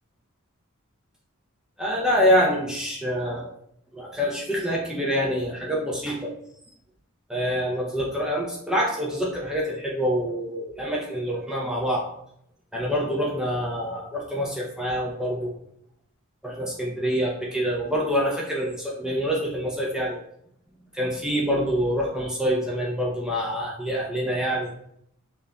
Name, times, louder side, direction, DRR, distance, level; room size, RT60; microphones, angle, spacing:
voice 1, 1.8-3.5 3.9-6.3 7.3-12.0 12.7-15.5 16.4-20.2 20.9-24.7, equal, 5° right, -4 dB, 0.6 m, -26 dB
5.6 x 2.5 x 2.2 m, 0.72 s
head